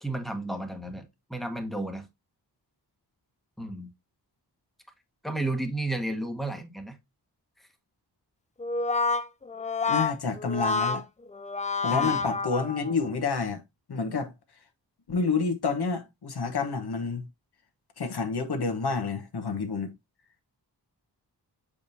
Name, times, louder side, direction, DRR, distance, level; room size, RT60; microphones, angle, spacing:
voice 1, 0.0-1.0 1.3-2.0 3.6-3.9 5.2-6.9 11.9-12.1, right 2 dB, ahead, 1.2 m, -32 dB
Brass instrument, 8.6-13.1, left 4 dB, 20° left, 0.4 m, -28 dB
voice 2, 9.9-11.0 11.8-13.6 13.9-14.3 15.1-17.2 18.0-19.9, left 4 dB, 65° left, 1.2 m, -29 dB
7.2 x 5.0 x 2.7 m
wide cardioid pair, 125°, 41 cm